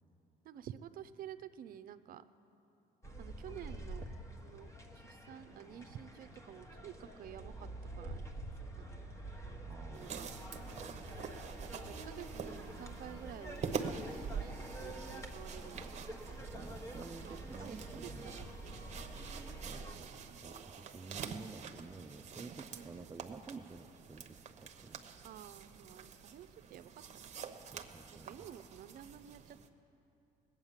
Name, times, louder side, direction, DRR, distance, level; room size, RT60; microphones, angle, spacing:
voice 1, 0.4-2.2 3.2-4.1 4.4-4.7 4.9-7.7 8.0-8.2 8.8-9.1 9.9-10.2 11.7-16.5 16.9-18.8 19.8-20.4 22.7-23.1 25.2-27.3 28.1-29.6, right 10 dB, 60° right, 12 dB, 0.6 m, -51 dB
sound 1, 3.0-19.9, right 1 dB, 15° left, 1.4 m, -47 dB
voice 2, 9.7-10.3 16.4-18.4 18.9-20.1 20.4-25.0 27.7-28.4, right 3 dB, 15° right, 6 dB, 0.5 m, -51 dB
sound 2, 9.9-29.7, right 6 dB, 40° right, 1.0 m, -47 dB
19.0 x 8.9 x 7.3 m, 2.8 s
cardioid pair, 110°, 17 cm